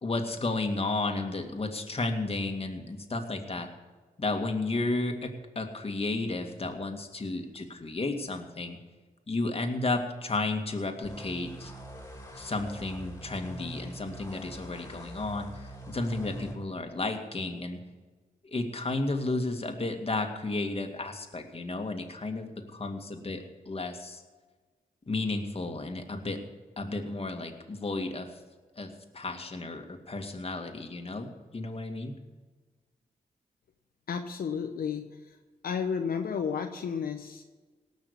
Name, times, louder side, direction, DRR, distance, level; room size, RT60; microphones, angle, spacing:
voice 1, 0.0-3.7 4.2-8.8 9.3-11.7 12.3-17.8 18.4-24.2 25.1-26.4 26.8-28.3 28.8-32.1, left 2 dB, 40° left, 5 dB, 2.2 m, -33 dB
sound 1, 11.0-16.6, right 1 dB, 15° left, 3.5 m, -44 dB
voice 2, 34.1-35.4 35.6-37.4, left 6 dB, 75° left, 4 dB, 0.9 m, -32 dB
18.0 x 6.4 x 8.3 m, 1.3 s
cardioid pair, 50°, 15 cm